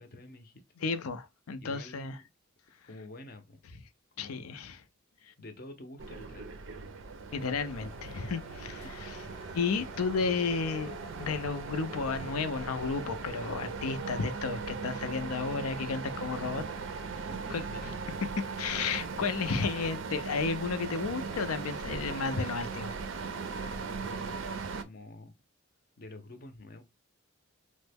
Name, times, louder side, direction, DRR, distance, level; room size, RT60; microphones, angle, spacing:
voice 1, 0.0-0.8 1.6-2.3 2.8-3.6 4.2-4.5 5.4-6.5 8.7-8.9 17.3-17.9 23.6-24.5 24.8-25.3 26.0-26.8, left 2 dB, 45° left, 0.6 m, -48 dB
voice 2, 0.8-2.2 4.2-4.8 7.3-9.1 9.5-16.6 17.5-17.9 18.4-22.9, left 5 dB, 85° left, 0.5 m, -33 dB
sound 1, 6.0-24.8, right 4 dB, 60° right, 0.4 m, -39 dB
sound 2, 7.3-17.6, left 1 dB, ahead, 0.8 m, -55 dB
3.0 x 2.1 x 3.3 m
head